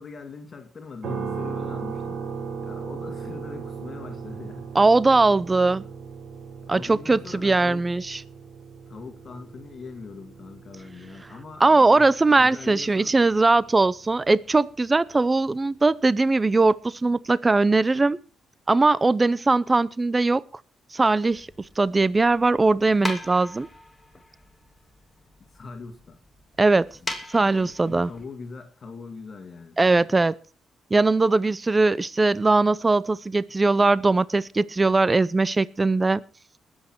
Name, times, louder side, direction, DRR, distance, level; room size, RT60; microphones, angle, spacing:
voice 1, 0.0-2.2 2.6-4.8 6.7-7.9 8.9-13.2 25.5-26.2 27.0-30.1, left 4 dB, 40° left, 4 dB, 2.2 m, -41 dB
sound 1, 1.0-15.0, right 6 dB, 65° right, 4.6 m, -38 dB
voice 2, 4.7-5.8 6.7-8.2 11.6-18.2 18.7-20.4 20.9-21.5 21.8-23.7 26.6-26.9 27.3-28.1 29.8-30.3 30.9-36.2, right 3 dB, 20° right, 19 dB, 0.6 m, -20 dB
sound 2, 21.3-28.3, left 2 dB, 10° left, 2.7 m, -40 dB
20.5 x 8.1 x 4.6 m, 0.37 s
cardioid pair, 90°, 0 cm